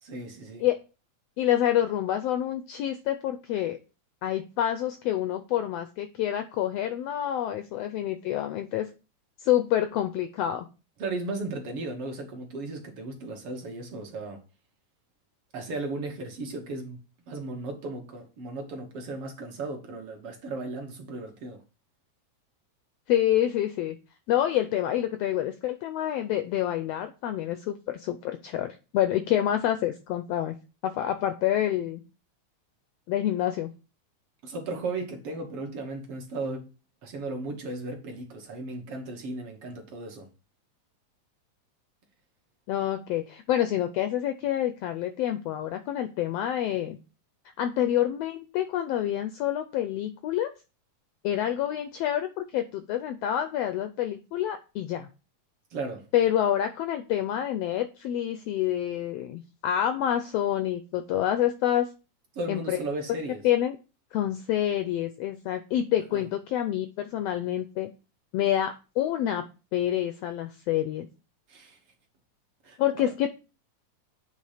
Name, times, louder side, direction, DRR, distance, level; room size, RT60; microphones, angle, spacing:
voice 1, 0.0-0.7 11.0-14.4 15.5-17.0 17.3-21.6 34.4-36.7 37.0-40.3 55.7-56.0 62.3-63.4 66.1-66.2 71.5-71.8 72.6-72.8, right 2 dB, 60° right, 1.9 m, -35 dB
voice 2, 1.4-3.8 4.2-8.9 9.4-10.7 23.1-24.0 24.3-30.6 30.8-32.0 33.1-33.7 42.7-47.0 47.6-50.5 51.2-55.1 56.1-61.9 62.5-62.8 63.4-63.8 64.1-67.9 68.3-69.4 69.7-71.1 72.8-73.3, left 11 dB, 85° left, 1.4 m, -27 dB
8.5 x 3.5 x 4.9 m
omnidirectional pair, 3.4 m